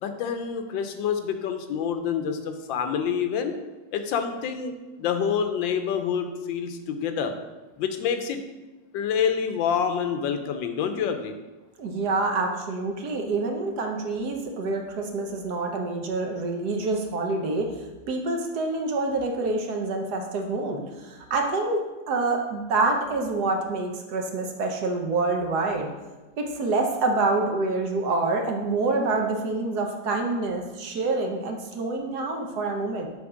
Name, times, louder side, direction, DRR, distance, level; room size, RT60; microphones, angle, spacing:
voice 1, 0.0-3.5 3.9-4.7 5.0-7.3 7.8-8.4 8.9-11.3, left 7 dB, 85° left, 7 dB, 1.4 m, -27 dB
voice 2, 11.8-25.9 26.4-33.1, right 3 dB, 65° right, 3 dB, 1.3 m, -27 dB
7.1 x 4.5 x 4.9 m, 1.2 s
omnidirectional pair, 2.0 m